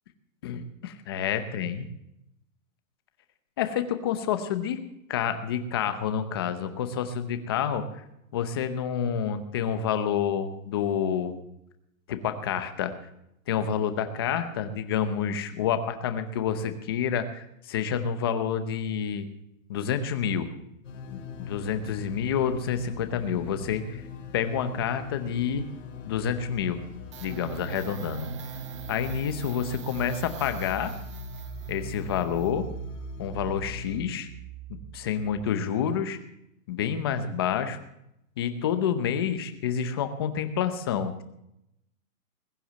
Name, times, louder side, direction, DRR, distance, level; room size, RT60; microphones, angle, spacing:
voice 1, 0.4-1.9 3.6-4.8 5.1-7.8 8.3-11.4 12.1-12.9 13.5-19.3 19.7-20.5 21.1-24.0 24.3-25.6 26.0-26.8 27.2-28.3 28.9-30.9 31.7-32.7 33.2-34.3 34.9-36.2 36.7-37.8 38.4-41.2, left 8 dB, 20° left, 9 dB, 0.8 m, -28 dB
sound 1, 20.8-34.0, left 7 dB, 60° left, 4.2 m, -42 dB
sound 2, 27.1-35.6, right 8 dB, 20° right, 0.8 m, -41 dB
20.5 x 8.4 x 7.6 m, 0.81 s
hypercardioid pair, 175°, 41 cm